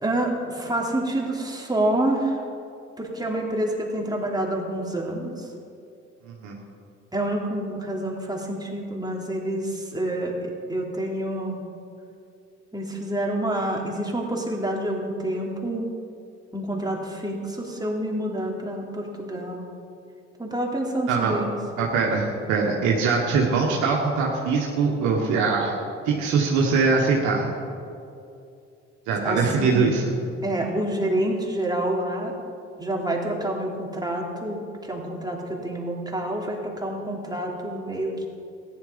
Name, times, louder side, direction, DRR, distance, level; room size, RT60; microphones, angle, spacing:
voice 1, 0.0-2.4 3.0-5.5 7.1-11.6 12.7-15.9 16.5-19.6 20.4-21.6 29.2-29.8 30.4-32.3 32.8-38.3, right 1 dB, 15° right, -1 dB, 3.1 m, -28 dB
voice 2, 6.3-6.6 21.1-21.4 21.8-25.7 26.0-27.5 29.1-30.0, right 4 dB, 85° right, -2 dB, 1.5 m, -22 dB
14.0 x 10.5 x 5.2 m, 2.5 s
supercardioid pair, 55°, 29 cm